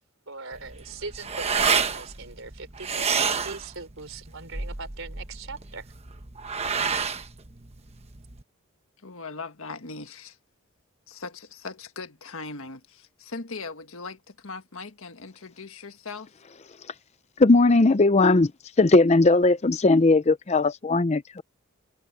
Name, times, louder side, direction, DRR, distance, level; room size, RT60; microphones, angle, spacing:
voice 1, 0.3-5.9, right 4 dB, 60° right, 4.3 m, -40 dB
sound 1, 0.5-8.4, right 6 dB, 30° right, 1.1 m, -29 dB
voice 2, 9.0-10.4 11.1-16.3, left 4 dB, 65° left, 1.7 m, -39 dB
voice 3, 17.4-18.5 18.8-21.4, left 3 dB, 30° left, 0.5 m, -18 dB
head